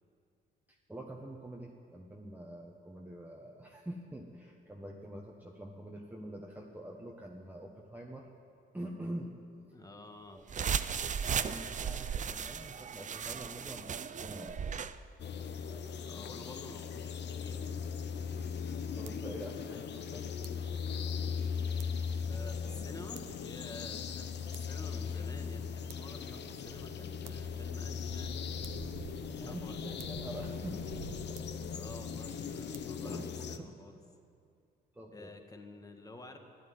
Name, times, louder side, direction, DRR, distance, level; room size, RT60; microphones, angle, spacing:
voice 1, 0.7-8.3 8.7-9.3 10.3-10.5 11.3-14.6 15.7-15.9 19.0-20.2 29.1-31.5 33.0-33.3 33.6-33.8 34.9-35.3, right 1 dB, 10° right, -1 dB, 1.4 m, -45 dB
voice 2, 9.7-10.4 16.1-17.8 22.2-28.4 28.8-30.0 31.7-34.0 35.1-36.4, left 2 dB, 20° left, 5 dB, 1.7 m, -50 dB
sound 1, 10.5-14.9, right 7 dB, 40° right, 0.6 m, -36 dB
sound 2, 15.2-33.6, left 6 dB, 60° left, 0.9 m, -39 dB
sound 3, 18.0-32.9, right 7 dB, 85° right, 0.9 m, -53 dB
12.5 x 11.5 x 9.5 m, 2.4 s
cardioid pair, 90°, 20 cm